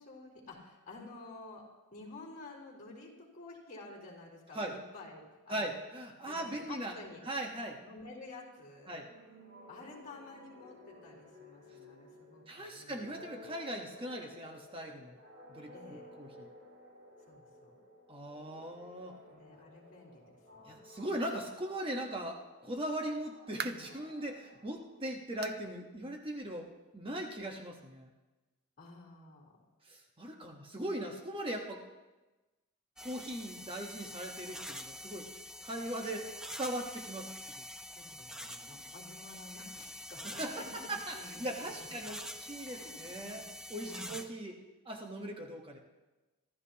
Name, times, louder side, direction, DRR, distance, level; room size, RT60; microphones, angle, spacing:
voice 1, 0.0-5.8 6.2-7.2 7.8-9.0 9.7-13.3 15.7-16.1 17.3-17.8 19.3-20.9 28.8-29.5 37.9-41.9 42.6-43.5 43.8-44.3, left 3 dB, 40° left, -1 dB, 3.7 m, -51 dB
voice 2, 5.5-6.9 7.3-7.8 8.9-9.1 12.5-15.2 15.5-16.5 18.1-19.1 20.6-28.1 29.9-31.8 33.0-35.3 35.6-36.3 36.6-37.3 40.2-43.4 43.7-45.8, right 1 dB, 25° right, 1 dB, 1.1 m, -39 dB
sound 1, 8.9-25.3, left 2 dB, 70° right, 5.5 m, -56 dB
sound 2, 23.0-24.0 24.5-24.6 25.4-25.7 26.0-26.1 26.6-26.7 27.8-27.9, right 8 dB, 50° right, 0.6 m, -43 dB
sound 3, 33.0-44.2, equal, 5° right, 0.8 m, -46 dB
24.5 x 13.5 x 2.9 m, 1.1 s
head